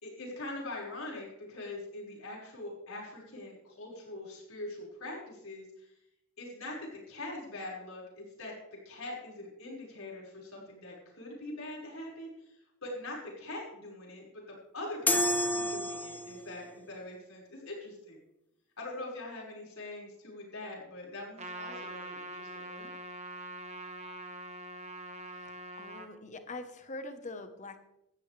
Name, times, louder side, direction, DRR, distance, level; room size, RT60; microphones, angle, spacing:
voice 1, 0.0-5.9 6.4-8.5 8.9-18.2 18.8-22.9, left 2 dB, 70° left, -3 dB, 5.5 m, -43 dB
sound 1, 15.1-16.6, left 1 dB, 10° left, 0.7 m, -29 dB
Trumpet, 21.4-26.1, right 1 dB, 30° right, 1.4 m, -43 dB
voice 2, 25.3-27.8, left 2 dB, 35° left, 8 dB, 1.2 m, -44 dB
17.0 x 13.0 x 3.4 m, 0.85 s
head